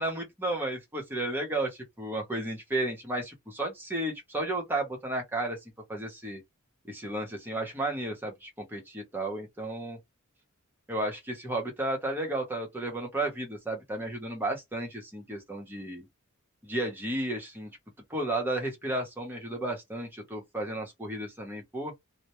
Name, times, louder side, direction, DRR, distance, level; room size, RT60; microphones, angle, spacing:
voice 1, 0.0-5.6 5.9-6.4 6.9-10.0 10.9-16.1 16.6-17.7 18.1-21.9, right 1 dB, 10° right, 0.8 m, -33 dB
2.2 x 2.0 x 2.9 m
head